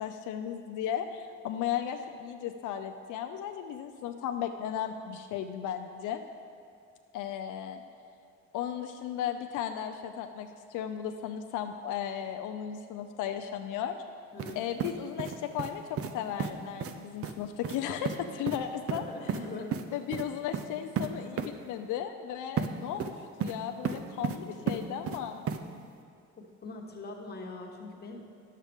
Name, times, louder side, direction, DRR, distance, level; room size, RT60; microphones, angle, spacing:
voice 1, 0.0-6.2 7.1-7.8 8.5-14.0 14.6-19.0 19.9-25.4, left 9 dB, 85° left, 6 dB, 0.5 m, -35 dB
sound 1, 14.4-14.5 14.8-15.7 16.0-16.1 16.4-16.5 16.8-16.9 17.2-17.3 17.6-17.8 18.0-18.2 18.5-18.6 18.9-19.4 19.7-19.8 20.1-20.2 20.5-20.7 21.0-21.1 21.4-21.5 22.6-22.7 23.0-23.6 23.8-24.4 24.7-25.2 25.5-25.6, right 7 dB, 50° right, 0.6 m, -32 dB
voice 2, 18.9-19.7 26.4-28.2, left 3 dB, 35° left, 1 dB, 1.2 m, -42 dB
10.5 x 7.4 x 3.5 m, 2.3 s
cardioid pair, 90°, 30 cm